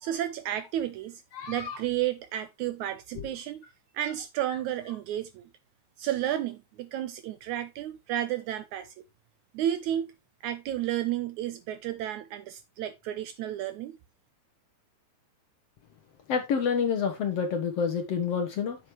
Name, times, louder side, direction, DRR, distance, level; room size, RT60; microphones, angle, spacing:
voice 1, 0.0-1.2 1.5-3.6 3.9-5.5 6.0-9.0 9.5-10.2 10.4-14.0, right 12 dB, 75° right, 1.8 m, -32 dB
voice 2, 1.3-1.8 16.3-18.8, left 6 dB, 65° left, 1.6 m, -28 dB
8.0 x 7.7 x 3.2 m
omnidirectional pair, 3.9 m